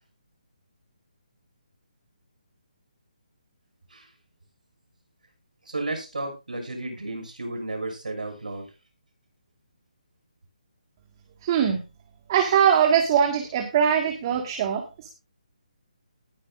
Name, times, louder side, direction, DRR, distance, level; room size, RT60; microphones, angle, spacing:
voice 1, 5.6-8.7, right 2 dB, 85° right, 3 dB, 6.3 m, -33 dB
voice 2, 11.4-11.8 12.3-14.8, right 8 dB, 30° right, 4 dB, 1.8 m, -21 dB
19.5 x 8.1 x 2.6 m, 0.28 s
hypercardioid pair, 155°, 4 cm